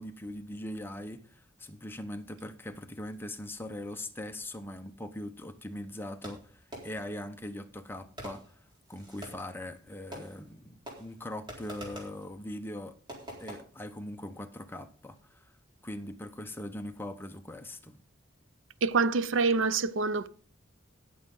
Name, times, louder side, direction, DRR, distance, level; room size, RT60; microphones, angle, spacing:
voice 1, 0.0-8.5 8.9-13.0 13.4-15.5 15.8-18.0, left 1 dB, 10° left, 0.9 m, -41 dB
Fireworks, 6.2-7.2 8.2-9.6 10.1-10.6 10.9-12.2 13.1-13.6, right 1 dB, 25° right, 3.9 m, -45 dB
voice 2, 18.8-20.3, right 4 dB, 85° right, 0.6 m, -26 dB
18.0 x 7.1 x 3.8 m
head